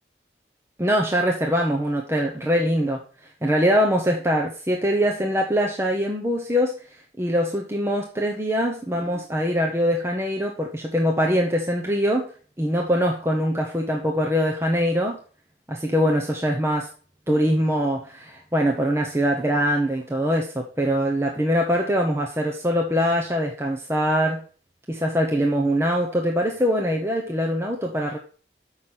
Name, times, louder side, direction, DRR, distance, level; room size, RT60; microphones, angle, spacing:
voice 1, 0.8-3.0 3.4-6.8 7.2-12.3 12.6-15.2 15.7-16.9 17.3-24.4 24.9-28.2, equal, 15° right, 0.8 m, -23 dB
7.1 x 5.7 x 6.0 m
head